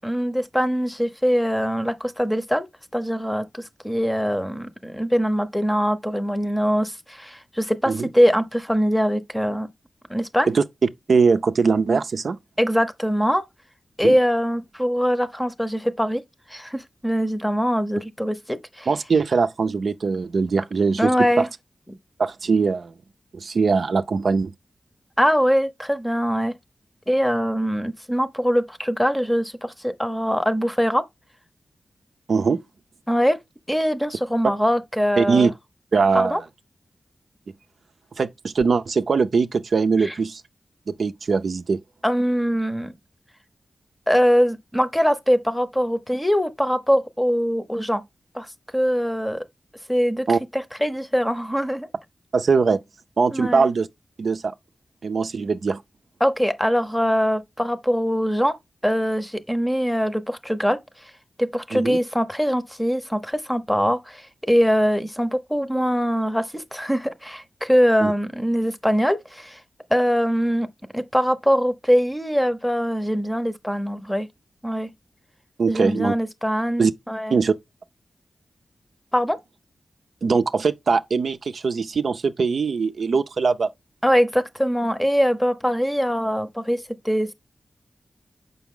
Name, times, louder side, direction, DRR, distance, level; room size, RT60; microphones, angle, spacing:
voice 1, 0.0-2.7 2.9-9.7 10.1-10.5 12.6-13.5 14.0-16.2 16.5-18.9 21.0-21.5 25.2-26.5 27.1-31.0 33.1-33.4 33.7-35.5 36.1-36.4 40.0-40.1 42.0-42.9 44.1-48.0 48.3-49.5 49.9-50.3 50.5-51.9 53.3-53.7 56.2-58.6 58.8-60.8 61.4-69.6 69.9-70.7 70.9-74.3 74.6-74.9 75.7-77.4 79.1-79.4 84.0-87.3, equal, 5° left, 0.8 m, -22 dB
voice 2, 11.1-12.4 14.0-14.2 18.9-21.1 21.4-21.5 22.2-22.9 23.3-24.5 32.3-32.6 35.2-35.5 35.9-36.4 38.2-40.4 40.9-41.8 50.3-50.4 52.3-52.8 53.2-53.9 54.2-54.5 55.0-55.8 61.7-62.0 68.0-68.1 75.6-76.1 76.8-76.9 77.3-77.5 80.2-83.7, right 4 dB, 70° right, 0.5 m, -21 dB
7.0 x 5.4 x 3.7 m
wide cardioid pair, 105°, 0 cm